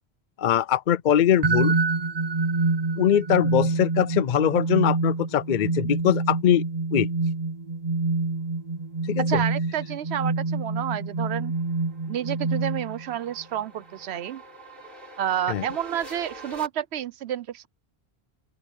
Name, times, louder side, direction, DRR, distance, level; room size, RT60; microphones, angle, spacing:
voice 1, 0.4-1.7 3.0-6.6 6.9-7.1 9.1-9.2 15.5-15.6, left 9 dB, 55° left, 0.6 m, -22 dB
sound 1, 1.4-13.2, right 3 dB, 40° right, 0.9 m, -26 dB
voice 2, 9.3-11.5 12.1-14.4 15.2-17.7, right 10 dB, 90° right, 1.0 m, -30 dB
sound 2, 10.1-16.7, right 1 dB, 60° right, 7.8 m, -46 dB
open air
omnidirectional pair, 1.1 m